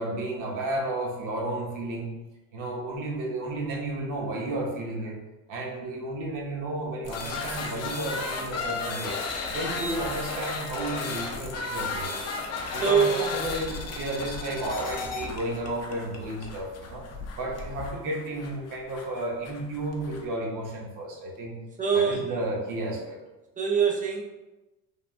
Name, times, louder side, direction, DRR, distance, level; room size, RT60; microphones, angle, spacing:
voice 1, 0.0-2.1 2.5-5.2 5.5-9.2 9.5-12.3 12.7-17.1 17.3-21.6 21.9-23.2, right 1 dB, 55° right, -1 dB, 0.9 m, -32 dB
sound 1, 7.0-20.2, left 4 dB, 45° left, 0.5 m, -34 dB
voice 2, 12.7-13.3 21.8-22.4 23.6-24.2, right 6 dB, 20° right, 0 dB, 0.5 m, -24 dB
3.4 x 2.1 x 2.4 m, 1.0 s
supercardioid pair, 85°, 36 cm